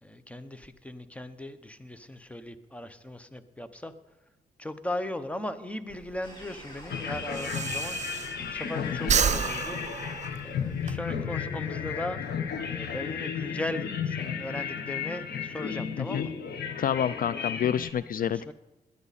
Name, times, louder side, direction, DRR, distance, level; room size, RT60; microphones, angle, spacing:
voice 1, 0.0-3.9 4.6-8.0 8.5-9.8 10.4-12.2 12.7-16.3 18.2-18.5, left 1 dB, 10° left, 11 dB, 0.9 m, -37 dB
Breathing, 5.9-8.7 9.0-10.9, right 7 dB, 45° right, 0.6 m, -30 dB
sound 1, 6.2-11.2, equal, 25° left, 4.0 m, -50 dB
sound 2, 6.9-17.9, left 7 dB, 80° left, 1.2 m, -34 dB
voice 2, 16.0-16.3 16.8-18.5, left 9 dB, 60° left, 16 dB, 0.4 m, -28 dB
18.0 x 11.0 x 4.2 m, 0.97 s
cardioid pair, 85°, 17 cm